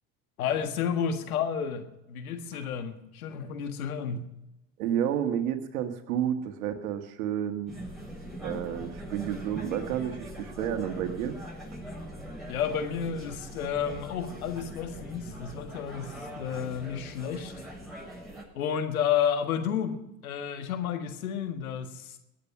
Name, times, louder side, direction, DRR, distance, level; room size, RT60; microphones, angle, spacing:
voice 1, 0.4-4.3 12.5-17.5 18.5-22.2, left 8 dB, 85° left, 1.7 m, -31 dB
voice 2, 4.8-7.7 8.4-11.4, right 9 dB, 75° right, 1.8 m, -30 dB
sound 1, 7.7-18.4, equal, ahead, 7.6 m, -42 dB
21.0 x 8.8 x 6.1 m
hypercardioid pair, 75°, 42 cm